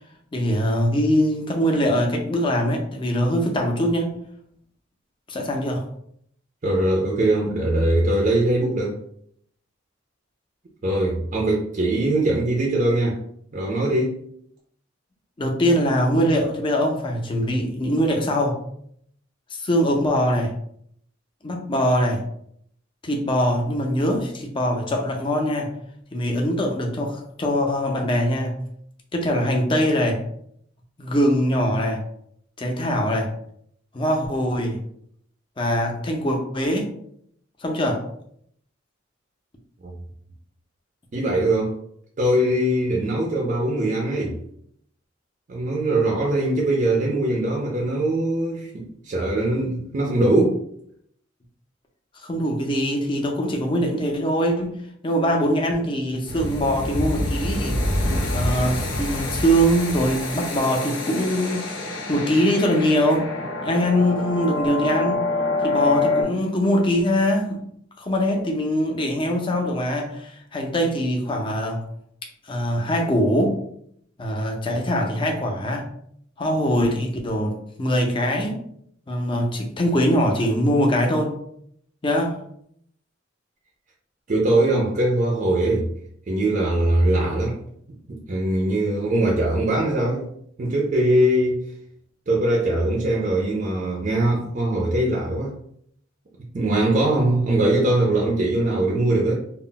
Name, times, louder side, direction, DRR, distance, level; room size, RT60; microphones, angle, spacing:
voice 1, 0.3-4.2 5.3-5.9 15.4-18.6 19.5-20.5 21.4-22.2 23.0-25.7 26.1-28.6 29.1-30.2 31.0-32.0 32.6-33.3 33.9-34.8 35.6-36.9 37.6-38.1 52.2-54.8 55.0-57.8 58.3-61.7 62.1-63.3 63.6-65.3 65.6-67.6 68.0-71.8 72.5-73.6 74.2-75.9 76.4-78.6 79.1-81.4 82.0-82.4, equal, 25° left, 1 dB, 0.5 m, -22 dB
voice 2, 6.6-8.9 10.8-13.2 13.5-14.1 41.1-41.8 42.2-44.3 45.5-50.6 84.3-85.9 86.3-87.6 88.1-90.3 90.6-91.6 92.3-95.5 96.5-99.3, right 1 dB, 40° right, -2 dB, 0.4 m, -21 dB
sound 1, 56.3-66.2, left 2 dB, 85° left, 0.7 m, -26 dB
2.2 x 2.0 x 3.7 m, 0.68 s
head